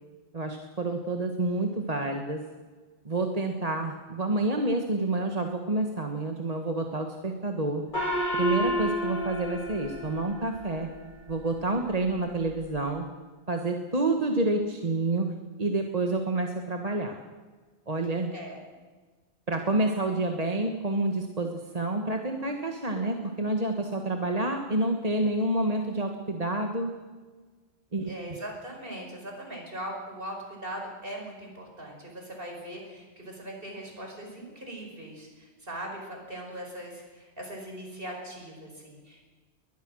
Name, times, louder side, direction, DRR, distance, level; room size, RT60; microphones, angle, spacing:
voice 1, 0.3-2.4 3.0-7.8 8.3-10.9 11.3-13.1 13.5-15.3 15.6-17.2 17.9-18.3 19.5-26.9 27.9-28.4, right 2 dB, 35° right, 4 dB, 1.6 m, -28 dB
Gong, 7.9-10.8, equal, 45° left, 8.0 m, -30 dB
voice 2, 28.0-39.3, right 1 dB, 55° right, 1 dB, 5.5 m, -40 dB
22.0 x 20.5 x 6.4 m, 1.4 s
omnidirectional pair, 1.1 m